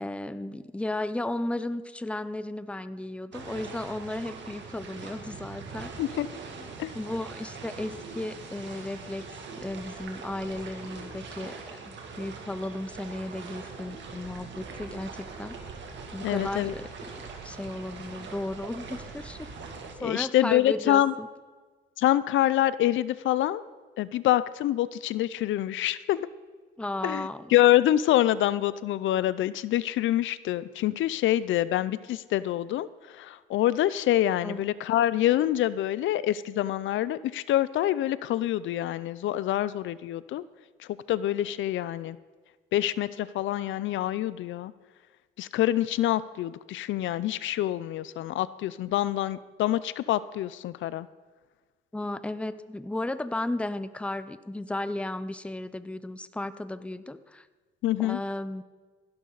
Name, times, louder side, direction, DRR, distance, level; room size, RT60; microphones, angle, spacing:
voice 1, 0.0-6.2 6.6-9.3 9.5-15.6 16.1-17.1 17.4-19.5 20.0-21.3 26.8-27.5 34.4-34.7 51.9-57.5 58.0-58.6, left 1 dB, 5° left, 14 dB, 0.6 m, -34 dB
sound 1, 3.3-19.9, right 4 dB, 65° right, 2.2 m, -42 dB
voice 2, 16.2-16.7 20.0-21.1 22.0-23.6 24.0-26.3 27.0-32.9 33.1-40.4 41.1-42.2 42.7-44.7 45.4-51.1 57.8-58.2, left 13 dB, 75° left, 17 dB, 0.5 m, -26 dB
15.5 x 11.5 x 4.0 m, 1.4 s
cardioid pair, 90°, 20 cm